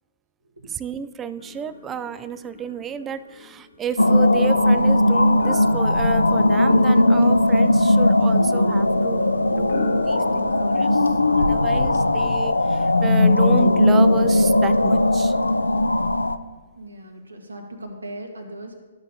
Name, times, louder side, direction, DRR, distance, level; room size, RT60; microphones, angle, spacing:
voice 1, 0.7-15.3, right 8 dB, 15° right, 13 dB, 0.3 m, -32 dB
sound 1, 1.4-11.0, left 4 dB, 60° left, 0.9 m, -40 dB
sound 2, 4.0-16.4, left 1 dB, 85° left, 0.4 m, -18 dB
voice 2, 16.7-18.7, right 1 dB, 80° right, 4 dB, 1.5 m, -38 dB
13.0 x 6.2 x 2.7 m, 1.3 s
figure-of-eight pair, 125°, 0 cm